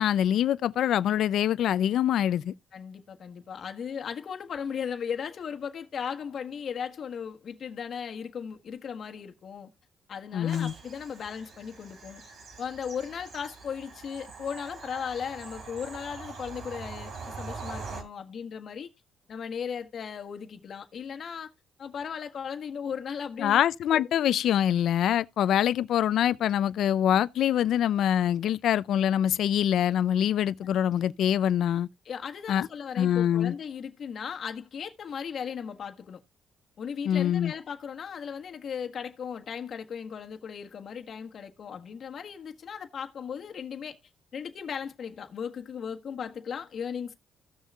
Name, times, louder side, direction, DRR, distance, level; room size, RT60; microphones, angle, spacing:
voice 1, 0.0-2.5 10.3-10.7 23.4-31.9 32.5-32.7 33.0-33.5 37.1-37.5, left 10 dB, 75° left, 0.5 m, -24 dB
voice 2, 2.7-9.7 10.1-12.2 12.6-18.9 19.3-21.5 21.8-23.6 23.9-24.0 32.0-36.2 36.8-44.0 44.3-47.1, left 7 dB, 55° left, 1.4 m, -37 dB
Bird vocalization bird call bird song / Train, 10.5-18.0, right 4 dB, 65° right, 3.4 m, -43 dB
16.5 x 6.5 x 2.4 m
cardioid pair, 90°, 0 cm